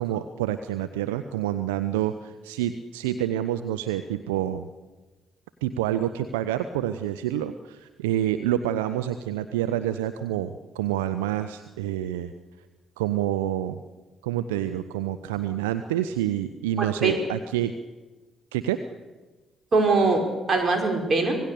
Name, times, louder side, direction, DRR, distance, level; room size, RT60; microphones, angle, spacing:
voice 1, 0.0-4.7 5.6-12.3 13.0-13.8 14.2-17.7 18.5-18.8, right 12 dB, 80° right, 10 dB, 0.7 m, -28 dB
voice 2, 16.8-17.2 19.7-21.4, right 3 dB, 40° right, 4 dB, 5.3 m, -22 dB
26.0 x 19.0 x 6.9 m, 1.2 s
hypercardioid pair, 45°, 0 cm